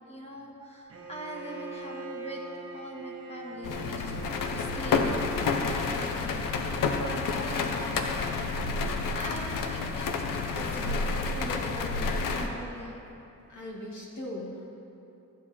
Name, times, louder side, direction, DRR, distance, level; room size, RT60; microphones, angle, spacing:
voice 1, 0.1-2.4 2.7-8.1 8.7-13.0, equal, 20° left, -1 dB, 1.9 m, -42 dB
Bowed string instrument, 0.9-5.6, right 2 dB, 45° right, 1.4 m, -42 dB
sound 1, 3.6-12.5, left 4 dB, 85° left, 0.8 m, -29 dB
voice 2, 13.5-14.7, left 1 dB, 65° left, -3 dB, 2.3 m, -40 dB
13.5 x 7.6 x 4.3 m, 2.8 s
cardioid pair, 75°, 32 cm